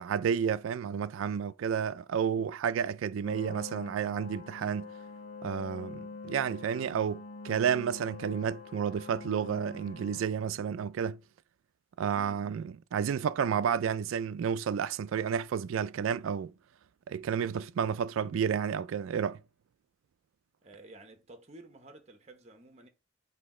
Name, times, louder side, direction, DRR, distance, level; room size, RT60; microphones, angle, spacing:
voice 1, 0.0-4.9 5.4-11.2 12.0-16.5 17.1-19.4, right 7 dB, 80° right, 0.3 m, -31 dB
sound 1, 3.2-10.2, left 4 dB, 85° left, 1.4 m, -45 dB
voice 2, 12.1-12.7 20.6-22.9, right 2 dB, 35° right, 0.9 m, -52 dB
8.3 x 2.8 x 4.3 m
head